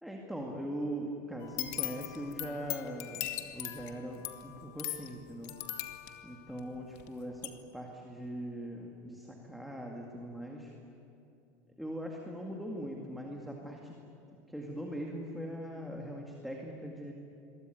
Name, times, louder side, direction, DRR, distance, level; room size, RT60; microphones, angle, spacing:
voice 1, 0.0-5.6 6.2-10.7 11.8-14.0 14.5-17.1, equal, ahead, -1 dB, 2.2 m, -41 dB
sound 1, 1.4-7.1 7.4-7.5, left 14 dB, 55° left, 2.1 m, -39 dB
28.0 x 22.5 x 9.2 m, 2.7 s
supercardioid pair, 160°, 9 cm